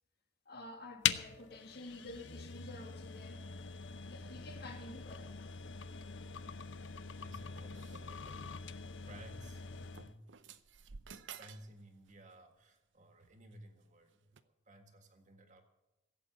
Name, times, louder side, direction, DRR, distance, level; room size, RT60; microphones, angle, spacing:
voice 1, 0.5-3.5 4.1-5.4, left 1 dB, 55° left, 1.8 m, -50 dB
sound 1, 1.0-10.2, left 7 dB, 80° left, 0.7 m, -42 dB
voice 2, 7.1-8.0 9.1-10.3 10.9-11.0 11.4-14.2 14.7-15.6, right 1 dB, 40° right, 1.8 m, -57 dB
sound 2, 7.5-8.5 9.4-9.5 9.9-11.7 12.0-12.3 13.2-13.5 14.3-14.4, right 6 dB, 80° right, 0.7 m, -53 dB
16.0 x 8.4 x 7.8 m
head